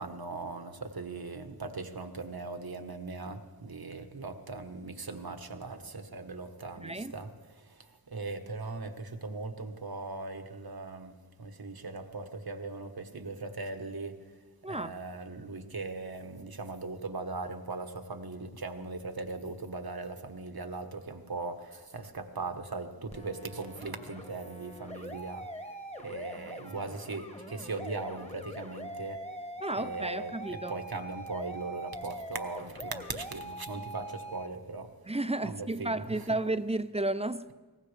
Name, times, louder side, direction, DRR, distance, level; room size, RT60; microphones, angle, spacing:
voice 1, 0.0-7.3 7.6-14.2 14.7-25.5 26.0-29.2 29.8-34.9 35.4-36.0, right 3 dB, 70° right, 1.3 m, -39 dB
voice 2, 6.8-7.1 14.6-14.9 29.6-30.8 35.0-37.5, right 2 dB, 15° right, 0.5 m, -32 dB
sound 1, 23.1-34.5, equal, 15° left, 1.4 m, -43 dB
22.0 x 19.0 x 3.4 m
wide cardioid pair, 55°, 38 cm